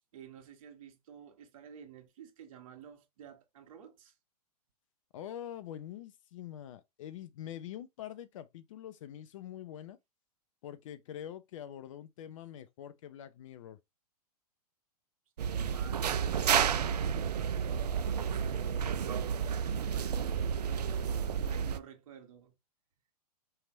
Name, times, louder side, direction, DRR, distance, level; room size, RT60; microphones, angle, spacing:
voice 1, 0.1-4.1 15.4-16.1 16.4-20.9 21.4-22.5, right 8 dB, 55° right, 1.5 m, -52 dB
voice 2, 5.1-10.0 10.6-13.8, left 10 dB, 55° left, 0.7 m, -45 dB
sound 1, 15.4-21.8, right 7 dB, 80° right, 0.5 m, -31 dB
4.7 x 3.5 x 3.0 m
hypercardioid pair, 115°, 20 cm